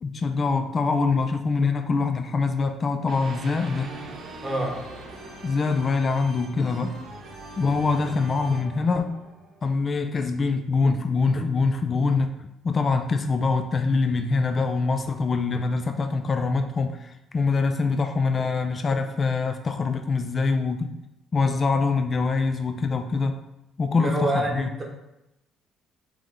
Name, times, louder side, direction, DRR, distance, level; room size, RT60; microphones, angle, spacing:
voice 1, 0.0-4.0 5.4-7.0 7.6-9.1 9.6-20.9 21.3-23.4 23.8-24.7, left 4 dB, 30° left, 7 dB, 0.3 m, -24 dB
sound 1, 3.1-10.0, right 2 dB, 50° right, 0.8 m, -41 dB
voice 2, 4.4-4.8 24.0-24.8, right 2 dB, 20° right, 0 dB, 0.9 m, -26 dB
4.9 x 3.0 x 3.6 m, 0.91 s
cardioid pair, 145°, 0 cm